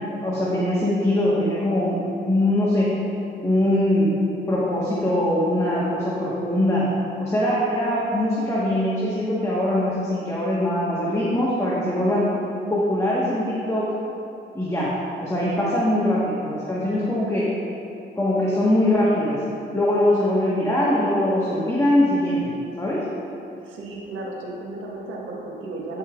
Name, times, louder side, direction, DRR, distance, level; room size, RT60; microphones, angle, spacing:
voice 1, 0.1-2.9 3.4-4.1 4.5-6.8 7.2-12.3 12.7-13.9 14.5-14.9 15.2-17.5 18.2-19.4 19.7-22.5 22.8-23.0, left 1 dB, 15° left, -7 dB, 1.3 m, -22 dB
voice 2, 23.6-26.0, right 2 dB, 85° right, -2 dB, 1.4 m, -34 dB
15.0 x 5.5 x 2.4 m, 2.8 s
cardioid pair, 90°, 20 cm